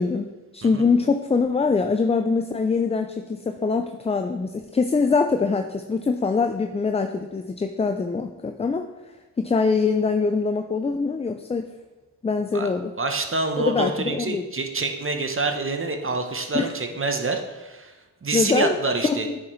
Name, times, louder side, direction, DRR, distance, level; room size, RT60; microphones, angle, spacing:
voice 1, 0.0-8.9 9.4-11.7 12.2-12.9 13.6-14.4 16.5-16.7 18.3-19.4, left 4 dB, 15° left, 7 dB, 0.3 m, -23 dB
voice 2, 13.0-17.9 18.2-19.3, right 3 dB, 30° right, 5 dB, 0.9 m, -26 dB
8.4 x 4.8 x 3.1 m, 1.2 s
supercardioid pair, 45°, 39 cm